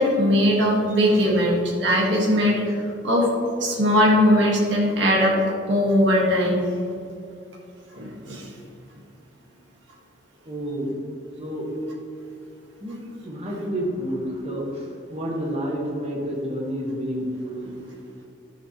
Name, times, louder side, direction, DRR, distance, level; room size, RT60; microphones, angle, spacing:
voice 1, 0.0-2.8 3.0-3.3 3.6-5.3 5.7-6.7 7.9-8.5, equal, 80° right, -3 dB, 1.6 m, -20 dB
voice 2, 10.4-10.9 11.4-11.7 12.8-17.8, equal, 35° right, -3 dB, 1.5 m, -29 dB
12.0 x 7.4 x 3.0 m, 2.5 s
head